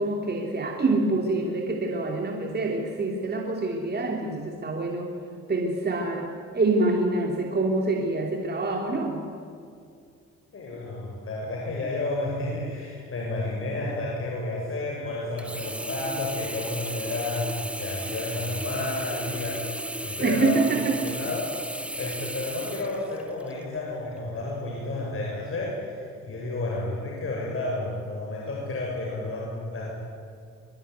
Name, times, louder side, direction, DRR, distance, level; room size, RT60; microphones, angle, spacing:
voice 1, 0.0-5.1 5.5-9.2 20.2-21.0, right 2 dB, 35° right, 1 dB, 3.1 m, -26 dB
voice 2, 10.5-20.6 21.0-29.9, left 2 dB, 45° left, -3 dB, 7.0 m, -31 dB
Sink (filling or washing), 15.4-23.6 24.2-24.3, right 1 dB, 5° right, 0.9 m, -35 dB
23.0 x 21.5 x 9.6 m, 2.4 s
cardioid pair, 90°, 30 cm